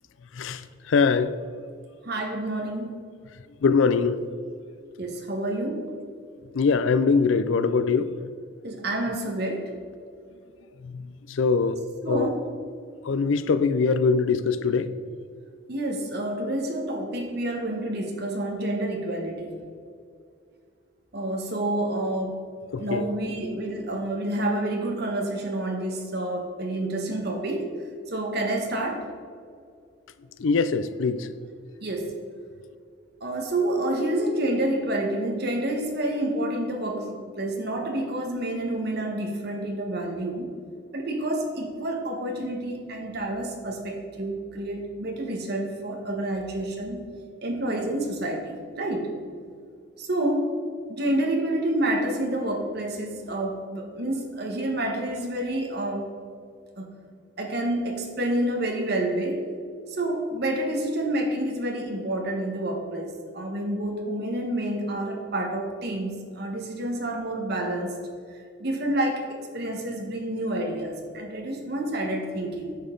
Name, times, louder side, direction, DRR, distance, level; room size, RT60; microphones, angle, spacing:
voice 1, 0.3-1.4 3.6-4.3 6.5-8.3 10.8-11.8 12.1-12.3 13.0-15.0 22.7-23.1 30.4-31.3, left 5 dB, 70° left, 12 dB, 0.4 m, -23 dB
voice 2, 2.0-3.0 5.0-5.8 8.6-9.7 12.0-12.4 15.7-19.5 21.1-22.3 22.8-27.7 28.1-29.1 31.8-32.1 33.2-40.5 40.9-47.0 47.4-49.2 50.0-50.5 50.9-56.1 56.8-56.9 57.4-59.4 59.9-67.9 68.6-69.2 69.5-72.8, right 1 dB, 50° right, 3 dB, 1.3 m, -28 dB
10.0 x 7.1 x 3.9 m, 2.2 s
head